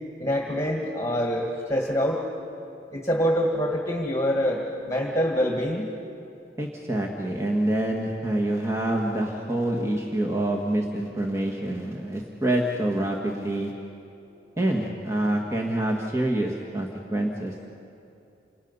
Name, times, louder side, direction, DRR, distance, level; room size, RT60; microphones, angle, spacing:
voice 1, 0.2-2.2 2.9-5.9, equal, 15° left, 1 dB, 1.8 m, -25 dB
voice 2, 6.6-13.7 14.6-17.5, right 1 dB, 15° right, -1 dB, 1.7 m, -26 dB
29.5 x 27.0 x 5.6 m, 2.7 s
head